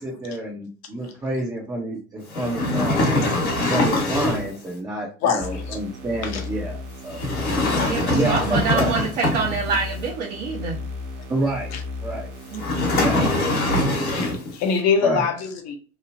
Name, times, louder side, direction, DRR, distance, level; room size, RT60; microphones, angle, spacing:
voice 1, 0.0-3.0 3.6-7.2 8.1-8.9 11.3-11.7 12.0-12.3 12.9-13.3 15.0-15.2, right 1 dB, 10° right, 0.5 m, -28 dB
sound 1, 2.3-4.6 7.1-9.8 12.6-14.5, left 2 dB, 75° left, 1.2 m, -23 dB
voice 2, 5.2-5.8 6.2-6.4 11.7-11.8 14.1-15.8, left 6 dB, 40° left, 0.6 m, -24 dB
sound 2, 5.4-13.4, left 3 dB, 40° right, 1.1 m, -34 dB
voice 3, 7.8-10.8 12.5-13.1, right 5 dB, 60° right, 0.9 m, -26 dB
3.1 x 2.0 x 2.5 m
hypercardioid pair, 85°, 43 cm